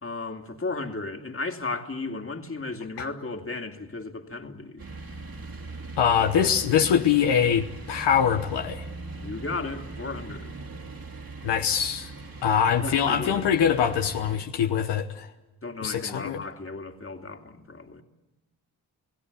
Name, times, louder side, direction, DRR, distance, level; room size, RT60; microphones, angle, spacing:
voice 1, 0.0-4.9 9.2-10.6 12.8-13.5 15.6-18.0, left 3 dB, 30° left, 2.5 m, -35 dB
sound 1, 4.8-14.4, right 3 dB, 55° right, 4.5 m, -40 dB
voice 2, 6.0-8.8 11.4-12.1 12.4-15.3 15.8-16.5, left 8 dB, 80° left, 1.1 m, -23 dB
29.0 x 17.0 x 8.4 m
supercardioid pair, 55°, 41 cm